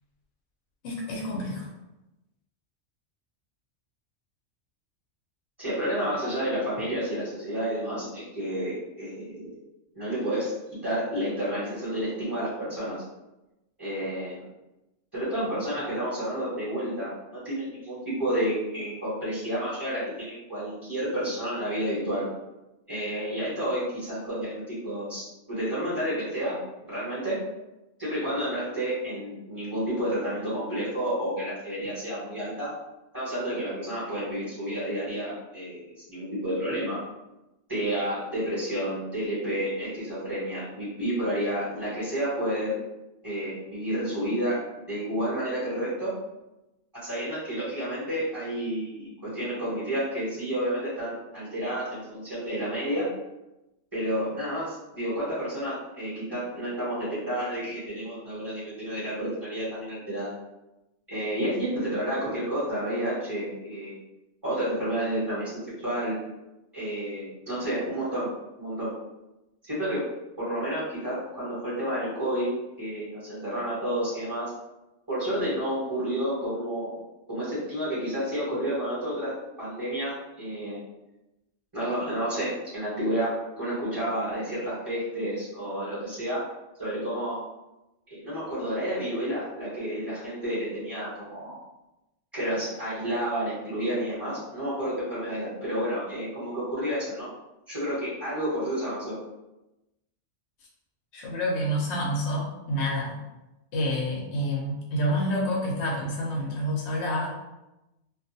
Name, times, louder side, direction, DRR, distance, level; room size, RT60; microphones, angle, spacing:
voice 1, 0.8-1.7 101.1-103.2 103.7-107.3, equal, 70° left, -4 dB, 0.9 m, -28 dB
voice 2, 5.6-9.5 9.9-10.5 10.8-13.0 13.8-14.4 15.1-22.2 22.9-26.6 26.9-27.4 28.0-32.7 33.1-35.8 36.1-37.0 37.7-42.7 43.2-44.6 44.9-46.1 47.0-53.1 53.9-60.3 61.1-63.9 64.4-66.2 66.7-68.3 68.6-68.9 69.7-70.0 70.4-72.5 72.8-74.5 75.1-76.9 77.3-79.3 79.6-80.8 81.7-86.4 86.8-87.4 88.1-91.5 92.3-97.3 97.7-99.1, equal, 20° right, -12 dB, 1.0 m, -30 dB
2.3 x 2.3 x 2.6 m, 0.97 s
omnidirectional pair, 1.3 m